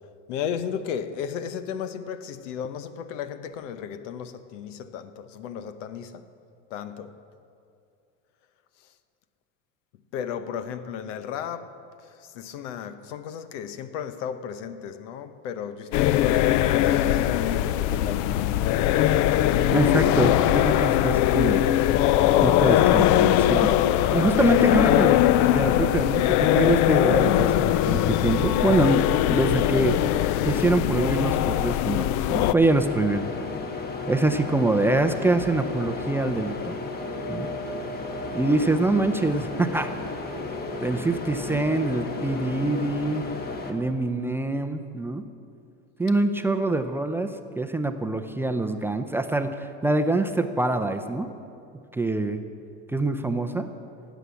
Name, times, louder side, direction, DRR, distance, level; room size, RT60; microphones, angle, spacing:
voice 1, 0.3-6.2 6.7-7.1 10.1-11.7 12.3-18.4, left 8 dB, 90° left, 1.0 m, -34 dB
sound 1, 15.9-32.5, left 13 dB, 55° left, 0.5 m, -21 dB
voice 2, 19.7-21.7 22.4-23.7 24.1-25.2 25.5-29.9 30.4-33.3 34.1-36.7 37.3-37.5 38.3-39.9 40.8-43.2 43.7-45.2 46.0-47.3 47.6-51.3 51.9-52.4 52.9-53.7, right 2 dB, 5° right, 0.4 m, -25 dB
sound 2, 32.6-43.7, left 3 dB, 25° left, 1.3 m, -33 dB
17.5 x 8.2 x 7.0 m
supercardioid pair, 135°, 36 cm